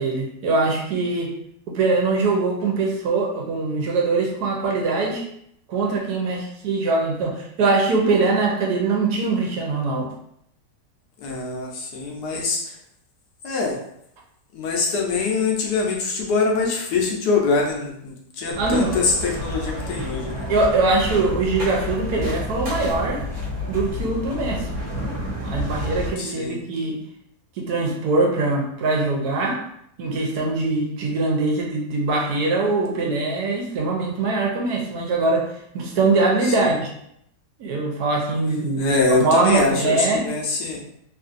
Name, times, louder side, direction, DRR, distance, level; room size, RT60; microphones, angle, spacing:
voice 1, 0.0-1.3 1.7-5.2 5.7-10.1 18.6-18.9 20.5-23.2 23.7-24.7 25.4-27.0 27.6-29.6 30.0-36.9 37.6-40.2, right 3 dB, 75° right, -1 dB, 1.2 m, -22 dB
voice 2, 11.2-12.6 13.4-13.8 14.5-20.4 26.2-26.6 36.5-36.7 38.8-40.8, left 4 dB, 75° left, -1 dB, 1.2 m, -24 dB
sound 1, 18.5-26.1, left 1 dB, 55° right, 1.1 m, -29 dB
3.1 x 2.6 x 2.4 m, 0.73 s
omnidirectional pair, 1.8 m